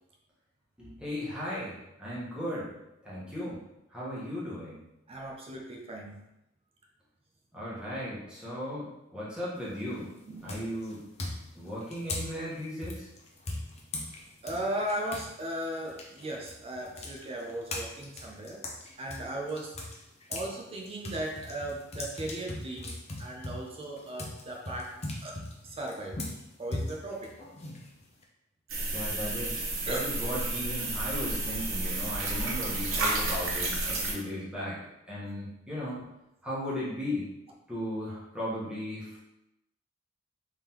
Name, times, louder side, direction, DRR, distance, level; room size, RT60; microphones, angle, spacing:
voice 1, 0.8-2.7 3.0-3.6 3.9-4.8 7.5-10.1 10.4-11.0 11.5-13.1 28.9-34.8 35.1-36.0 36.4-37.3 37.7-39.2, left 1 dB, 5° right, -9 dB, 1.2 m, -36 dB
voice 2, 5.1-6.2 10.3-10.7 14.4-18.7 19.0-19.8 20.3-26.2 26.6-27.4 29.8-30.1, right 1 dB, 30° right, 0 dB, 0.4 m, -37 dB
sound 1, 9.6-9.9 10.5-15.3 15.6-20.5 20.8-28.2, left 2 dB, 30° left, 0.6 m, -39 dB
sound 2, 28.7-34.1, right 2 dB, 75° right, 0.9 m, -31 dB
3.6 x 3.3 x 2.9 m, 0.90 s
head